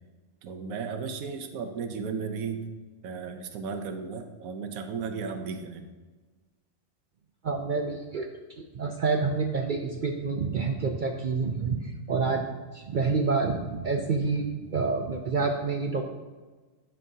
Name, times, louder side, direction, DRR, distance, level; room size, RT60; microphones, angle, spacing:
voice 1, 0.4-2.6 3.0-5.9, right 5 dB, 80° right, 7 dB, 1.1 m, -35 dB
voice 2, 7.4-8.3 8.6-12.5 12.7-16.0, right 4 dB, 65° right, 3 dB, 0.5 m, -28 dB
11.0 x 5.5 x 2.7 m, 1.3 s
omnidirectional pair, 1.4 m